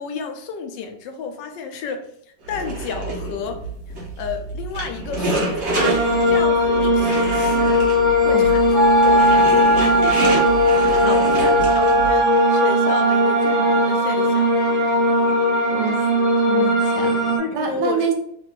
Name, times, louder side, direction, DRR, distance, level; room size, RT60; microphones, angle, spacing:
voice 1, 0.0-2.1 2.5-3.6 4.2-5.9 6.3-7.8 8.2-14.5 17.4-18.1, left 6 dB, 80° left, 5 dB, 1.3 m, -32 dB
sound 1, 2.4-12.2, right 2 dB, 45° right, 1.1 m, -28 dB
sound 2, 5.8-17.4, left 1 dB, 65° left, 1.4 m, -19 dB
Wind instrument woodwind instrument, 8.7-13.9, right 3 dB, 30° left, 1.1 m, -20 dB
voice 2, 11.0-11.6 15.7-16.1 16.4-18.1, right 6 dB, 75° right, 4 dB, 1.2 m, -27 dB
3.6 x 2.5 x 3.8 m, 0.69 s
omnidirectional pair, 2.0 m